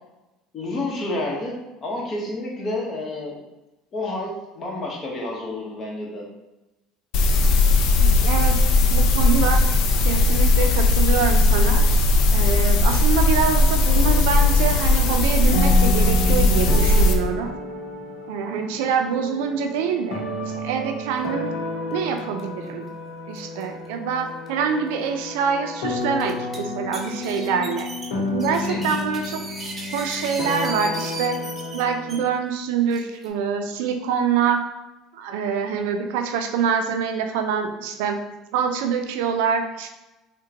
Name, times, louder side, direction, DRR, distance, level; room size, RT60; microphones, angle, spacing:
voice 1, 0.5-3.4 3.9-6.2 28.7-28.8, left 2 dB, 40° left, -1 dB, 0.9 m, -29 dB
sound 1, 7.1-17.1, left 2 dB, 65° left, 0.4 m, -18 dB
voice 2, 8.0-8.6 8.9-9.6 10.0-11.9 12.3-17.5 18.3-21.5 21.9-22.9 23.3-27.9 28.3-29.4 29.9-31.4 31.7-34.6 35.1-38.2 38.5-39.9, right 6 dB, 80° right, 5 dB, 0.3 m, -25 dB
sound 2, 13.8-32.3, left 2 dB, 90° left, 0.8 m, -31 dB
sound 3, 22.2-22.4 22.7-22.8 23.4-23.6 24.5-24.6 25.1-25.2 26.0-26.6 26.9-32.2 32.9-33.3, right 2 dB, 25° right, 0.6 m, -36 dB
3.6 x 2.1 x 2.8 m, 1.0 s
supercardioid pair, 95°, 0 cm